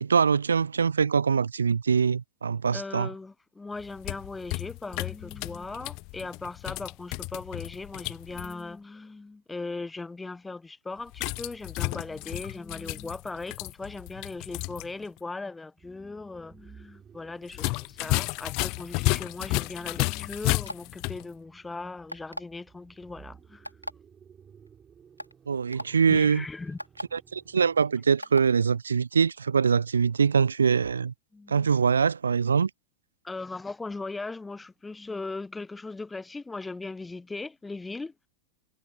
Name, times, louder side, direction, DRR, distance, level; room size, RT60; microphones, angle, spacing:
voice 1, 0.0-3.1 25.5-26.4 27.1-31.1 31.5-32.7, right 6 dB, 70° right, 0.5 m, -23 dB
voice 2, 2.7-23.7 25.7-25.8 26.1-26.8 31.3-31.7 33.2-38.1, left 3 dB, 10° left, 0.7 m, -39 dB
sound 1, 3.8-8.5 11.1-14.9 15.2-15.3 17.5-21.2, left 27 dB, 45° left, 0.3 m, -32 dB
sound 2, 15.8-28.0, right 7 dB, 20° right, 3.8 m, -57 dB
button press plastic alarm clock, 20.5-20.9 22.1-22.5 23.6-23.9 24.7-24.8 25.2-25.3 25.7-25.9 26.8-27.0 28.2-28.5, equal, 90° left, 2.1 m, -36 dB
figure-of-eight pair, 90°, 0 cm